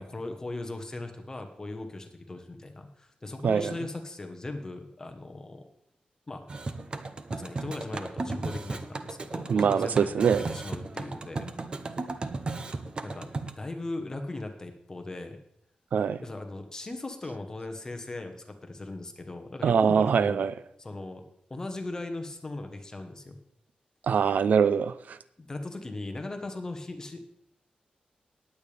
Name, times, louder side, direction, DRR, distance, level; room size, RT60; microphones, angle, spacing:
voice 1, 0.0-5.6 6.3-6.4 7.3-11.5 13.0-13.3 13.6-15.4 16.2-20.5 20.8-21.2 21.5-23.4 25.4-27.2, left 2 dB, 25° left, 5 dB, 1.1 m, -38 dB
sound 1, 6.5-13.5, right 3 dB, 35° right, 0.7 m, -35 dB
voice 2, 9.5-10.5 15.9-16.2 19.6-20.5 24.0-25.2, right 7 dB, 80° right, 15 dB, 0.4 m, -23 dB
19.0 x 8.6 x 3.4 m, 0.74 s
wide cardioid pair, 160°, 3 cm